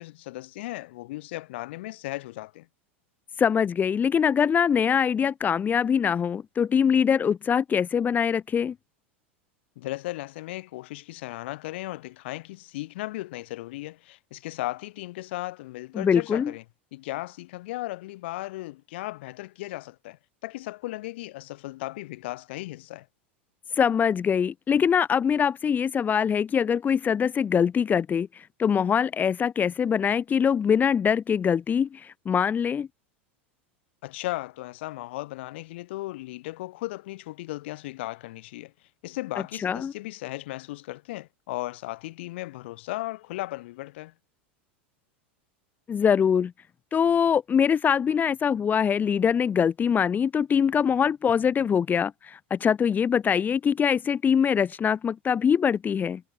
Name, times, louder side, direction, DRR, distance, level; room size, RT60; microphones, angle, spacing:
voice 1, 0.0-2.7 9.8-16.6 16.9-23.1 34.0-38.7 39.0-44.1, left 18 dB, 65° left, 7.7 m, -36 dB
voice 2, 3.4-8.7 15.9-16.5 23.8-32.9 39.6-39.9 45.9-46.5 46.9-56.2, left 7 dB, 25° left, 4.6 m, -23 dB
hypercardioid pair, 90°, 6 cm